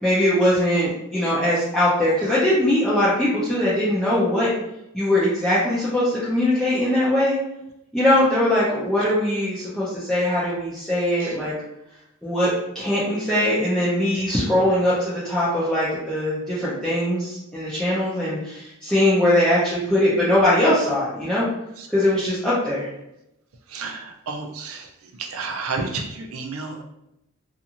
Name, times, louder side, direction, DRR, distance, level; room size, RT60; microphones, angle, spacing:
voice 1, 0.0-4.5 4.9-7.4 7.9-11.5 12.2-21.5 21.9-22.9, left 1 dB, ahead, -11 dB, 0.6 m, -21 dB
voice 2, 23.7-24.9 25.2-26.8, right 4 dB, 75° right, 2 dB, 0.5 m, -31 dB
2.5 x 2.5 x 2.8 m, 0.85 s
head